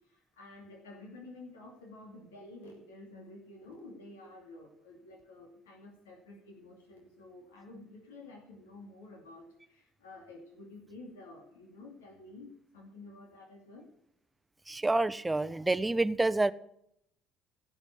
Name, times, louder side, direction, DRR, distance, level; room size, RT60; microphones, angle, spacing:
voice 1, 0.0-13.9, left 2 dB, 90° left, 0 dB, 2.6 m, -51 dB
voice 2, 14.7-16.5, right 2 dB, 15° right, 15 dB, 0.7 m, -28 dB
16.0 x 6.2 x 8.3 m, 0.74 s
hypercardioid pair, 65°, 0 cm